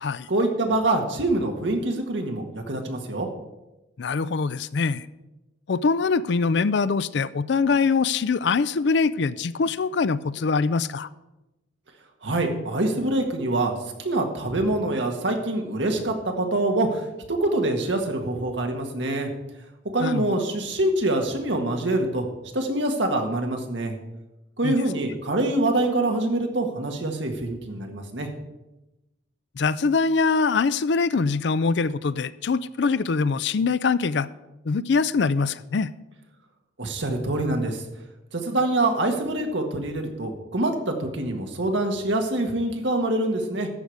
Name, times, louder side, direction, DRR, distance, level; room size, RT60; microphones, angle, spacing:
voice 1, 0.3-3.3 12.2-19.3 19.9-22.3 22.5-24.0 24.6-28.3 36.8-37.8 38.3-43.7, right 2 dB, 70° right, 1.7 m, -25 dB
voice 2, 4.0-5.1 5.7-11.1 20.0-20.3 24.6-24.7 29.6-34.3 34.7-35.9, left 4 dB, 60° left, 0.4 m, -23 dB
13.5 x 5.0 x 7.9 m
head